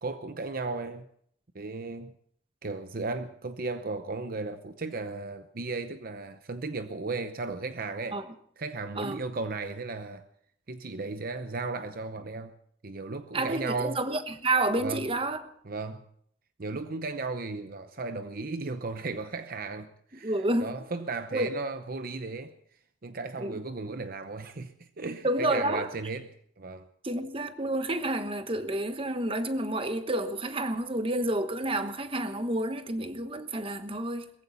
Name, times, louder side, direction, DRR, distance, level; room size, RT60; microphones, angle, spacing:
voice 1, 0.0-1.1 1.5-2.1 2.6-8.2 8.6-10.2 10.7-12.5 12.8-14.0 14.8-15.0 15.6-16.0 16.6-20.3 20.6-22.5 23.0-26.3 26.6-26.9, right 3 dB, 50° right, 0.8 m, -35 dB
voice 2, 13.3-15.4 20.2-20.8 21.3-21.5 23.4-23.6 25.2-25.9 27.0-34.3, right 1 dB, 30° right, 1.2 m, -29 dB
21.5 x 15.5 x 4.1 m
head